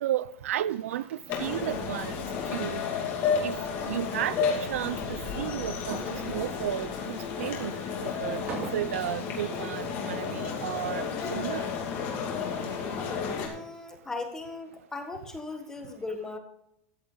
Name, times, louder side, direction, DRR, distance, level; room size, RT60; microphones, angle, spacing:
voice 1, 0.0-2.3 2.5-2.8 3.4-3.6 3.9-7.7 8.0-11.7, right 12 dB, 80° right, 0.6 m, -33 dB
sound 1, 0.6-13.5, right 4 dB, 25° right, 2.6 m, -48 dB
sound 2, 1.3-13.5, left 6 dB, 30° left, 2.6 m, -32 dB
voice 2, 13.3-16.4, left 3 dB, 5° left, 1.5 m, -38 dB
14.0 x 10.0 x 4.0 m
supercardioid pair, 175°, 7 cm